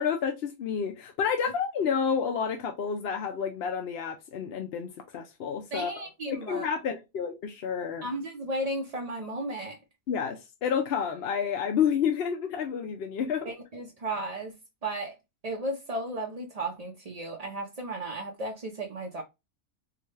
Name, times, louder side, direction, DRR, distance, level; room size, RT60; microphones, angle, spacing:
voice 1, 0.0-5.9 6.3-8.1 10.1-13.5, left 7 dB, 60° left, 0.7 m, -30 dB
voice 2, 5.7-6.7 8.0-9.8 13.5-14.5 14.8-15.1 15.4-19.2, right 1 dB, 50° right, 0.4 m, -34 dB
4.6 x 2.2 x 3.1 m
omnidirectional pair, 1.5 m